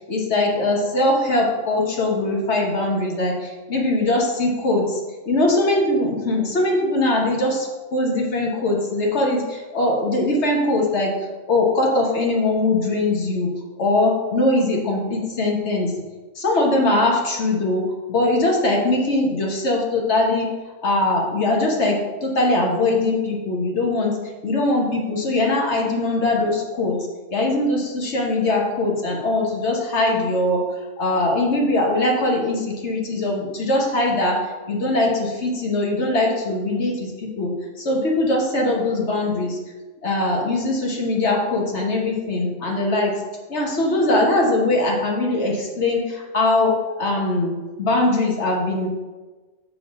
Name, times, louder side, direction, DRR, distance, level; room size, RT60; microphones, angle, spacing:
voice 1, 0.0-5.0 5.3-13.5 13.8-15.9 16.3-20.5 20.8-27.0 27.3-30.7 31.0-37.5 37.8-39.6 40.0-43.2 43.5-48.9, left 2 dB, 60° left, 0 dB, 1.3 m, -21 dB
6.1 x 3.7 x 5.2 m, 1.2 s
omnidirectional pair, 1.3 m